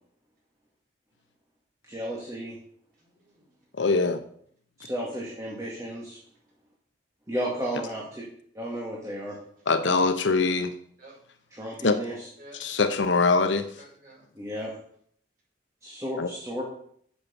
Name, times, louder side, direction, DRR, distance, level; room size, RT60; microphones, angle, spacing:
voice 1, 1.9-2.6 4.8-6.2 7.3-8.2 8.5-9.4 11.5-12.3 14.3-14.7 15.8-16.6, equal, 20° right, -4 dB, 2.2 m, -33 dB
voice 2, 3.0-3.5 11.0-11.2 11.5-11.7 12.4-14.3, right 1 dB, 50° right, -4 dB, 5.6 m, -52 dB
voice 3, 3.8-4.2 9.7-10.7 11.8-12.0 12.5-13.7 16.2-16.3, left 3 dB, 80° left, 9 dB, 0.9 m, -23 dB
8.7 x 7.2 x 7.0 m, 0.65 s
head